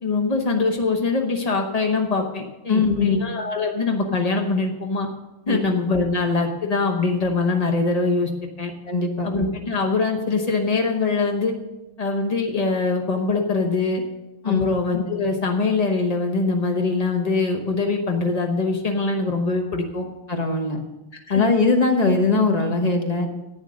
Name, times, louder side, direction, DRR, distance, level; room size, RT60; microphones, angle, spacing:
voice 1, 0.0-5.1 5.5-8.3 8.6-8.7 9.2-11.5 12.0-14.0 14.4-20.1 21.3-21.4, left 3 dB, 60° left, 3 dB, 0.4 m, -23 dB
voice 2, 2.7-3.2 5.5-5.7 8.8-9.3 14.4-14.7 20.3-20.8 21.3-23.3, left 3 dB, 25° left, 4 dB, 1.0 m, -20 dB
11.0 x 9.2 x 6.3 m, 1.0 s
omnidirectional pair, 2.4 m